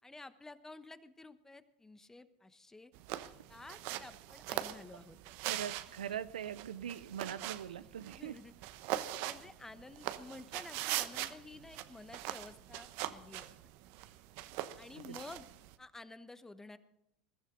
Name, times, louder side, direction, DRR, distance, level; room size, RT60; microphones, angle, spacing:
voice 1, 0.0-2.9 3.5-5.2 7.7-8.5 9.2-13.5 14.8-15.5 15.8-16.8, left 2 dB, 10° left, 1.1 m, -52 dB
sound 1, 2.9-15.7, right 14 dB, 60° right, 1.0 m, -42 dB
voice 2, 5.5-8.4 15.0-15.2, right 9 dB, 85° right, 0.6 m, -42 dB
21.0 x 13.5 x 3.9 m
hypercardioid pair, 95°, 4 cm